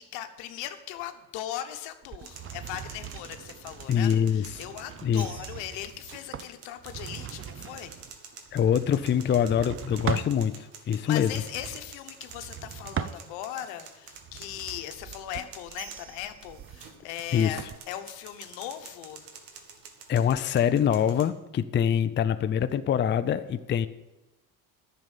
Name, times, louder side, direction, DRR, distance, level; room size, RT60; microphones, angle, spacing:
voice 1, 0.0-8.0 10.9-19.3 19.6-19.7, left 12 dB, 80° left, 8 dB, 1.1 m, -39 dB
sound 1, 2.0-10.4 11.2-13.6 14.1-17.8, right 9 dB, 30° right, 0.5 m, -40 dB
sound 2, 2.2-21.3, right 6 dB, 75° right, 1.7 m, -48 dB
voice 2, 3.9-4.4 5.0-5.3 8.5-11.3 17.3-17.5 20.1-23.9, left 8 dB, 25° left, 11 dB, 0.5 m, -24 dB
10.5 x 6.9 x 7.3 m, 1.0 s
supercardioid pair, 85°, 44 cm